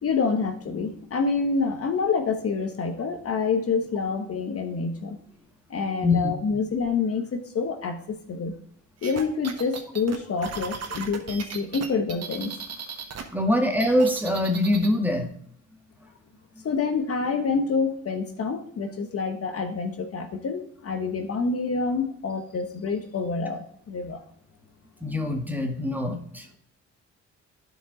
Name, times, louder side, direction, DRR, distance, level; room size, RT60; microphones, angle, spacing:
voice 1, 0.0-5.2 5.7-8.6 9.0-12.6 13.4-13.5 16.6-24.2, left 4 dB, 50° left, 6 dB, 1.2 m, -27 dB
sound 1, 9.0-13.2 13.5-14.9, right 6 dB, 55° right, 1.4 m, -36 dB
voice 2, 13.3-15.3 25.0-26.5, left 1 dB, 5° right, 4 dB, 1.6 m, -23 dB
11.5 x 5.0 x 3.8 m, 0.66 s
cardioid pair, 90°, 30 cm